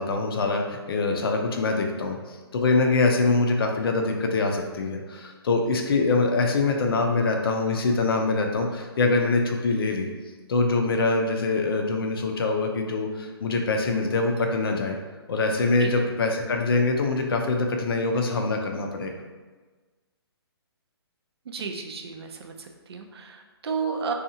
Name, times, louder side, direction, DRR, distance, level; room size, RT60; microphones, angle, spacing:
voice 1, 0.0-10.1 10.5-15.0 15.3-19.1, left 3 dB, 60° left, 3 dB, 0.4 m, -24 dB
voice 2, 21.5-24.1, right 5 dB, 70° right, 4 dB, 0.4 m, -32 dB
2.7 x 2.3 x 2.6 m, 1.3 s
hypercardioid pair, 160°, 14 cm